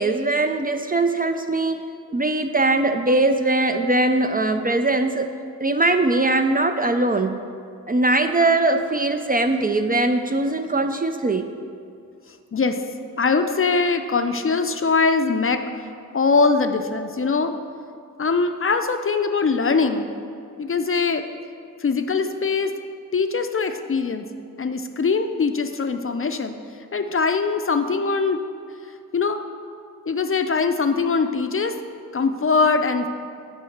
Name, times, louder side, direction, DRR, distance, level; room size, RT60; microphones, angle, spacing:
voice 1, 0.0-1.8 2.1-5.3 5.6-7.4 7.9-11.5, right 2 dB, 25° right, 7 dB, 0.4 m, -21 dB
voice 2, 12.5-15.6 16.1-17.5 18.2-20.1 20.6-21.3 21.8-22.7 23.1-24.3 24.6-26.6 26.9-28.4 29.1-29.4 30.1-31.8 32.1-33.1, left 4 dB, 40° left, 8 dB, 0.5 m, -22 dB
5.5 x 4.9 x 6.5 m, 2.4 s
cardioid pair, 50°, 33 cm